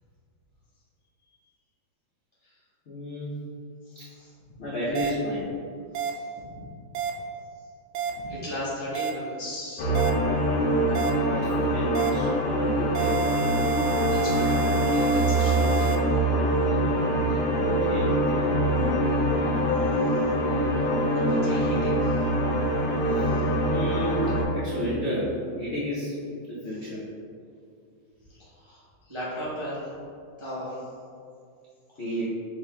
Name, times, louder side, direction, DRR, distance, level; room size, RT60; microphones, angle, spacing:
voice 1, 2.9-3.4 3.9-4.1 4.6-5.5 11.2-13.2 16.8-18.6 23.1-23.3 23.7-24.2 24.5-26.2 26.5-27.0 32.0-32.2, equal, 65° left, -8 dB, 0.6 m, -32 dB
voice 2, 3.8-4.6 5.9-6.6 7.1-7.2 8.1-9.9 14.1-16.0 19.3-19.6 20.1-20.2 21.1-22.2 23.2-23.4 28.3-29.9 30.4-30.9, equal, 25° right, -10 dB, 0.6 m, -37 dB
sound 1, 4.9-5.1 5.9-6.1 6.9-7.1 7.9-8.1 8.9-9.1 9.9-10.1 10.9-11.1 11.9-12.1 12.9-16.0, right 4 dB, 85° right, 1.5 m, -29 dB
sound 2, 9.8-24.4, right 1 dB, 90° left, 1.6 m, -24 dB
4.8 x 3.3 x 3.3 m, 2.4 s
omnidirectional pair, 2.3 m